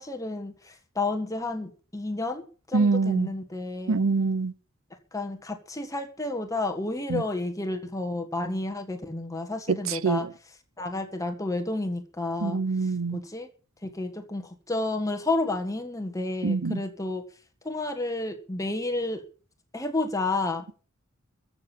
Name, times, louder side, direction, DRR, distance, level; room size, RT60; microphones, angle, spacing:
voice 1, 0.0-4.0 5.1-10.2 10.8-12.6 13.1-13.5 13.8-17.2 17.6-19.2 19.7-20.8, left 2 dB, 15° left, 1.6 m, -31 dB
voice 2, 2.7-3.3 3.9-4.5 7.1-7.2 9.7-10.3 12.4-13.2 16.4-16.8, right 4 dB, 80° right, 0.8 m, -25 dB
15.0 x 7.2 x 8.4 m
head